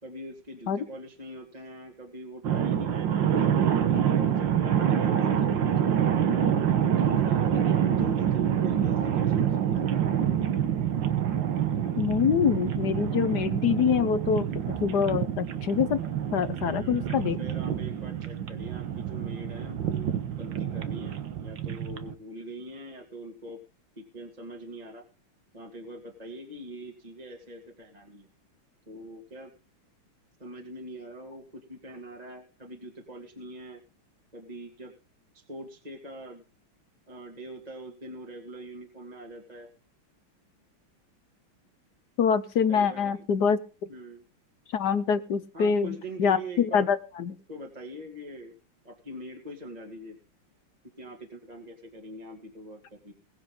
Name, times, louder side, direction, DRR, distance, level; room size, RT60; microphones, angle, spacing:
voice 1, 0.0-6.1 6.8-9.9 16.5-20.1 20.4-23.6 24.0-25.0 25.5-28.3 28.9-29.5 30.4-33.8 34.3-34.9 35.3-36.4 37.1-39.7 42.7-43.1 43.9-44.2 45.5-46.9 47.5-48.6 48.8-50.2 51.0-53.1, right 1 dB, 20° right, 1 dB, 2.3 m, -43 dB
sound 1, 2.4-22.1, right 9 dB, 65° right, 1.8 m, -27 dB
voice 2, 12.0-14.5 14.8-16.0 16.3-17.4 42.2-43.6 44.7-47.4, left 7 dB, 60° left, 13 dB, 1.4 m, -25 dB
21.5 x 7.9 x 3.8 m, 0.34 s
omnidirectional pair, 2.3 m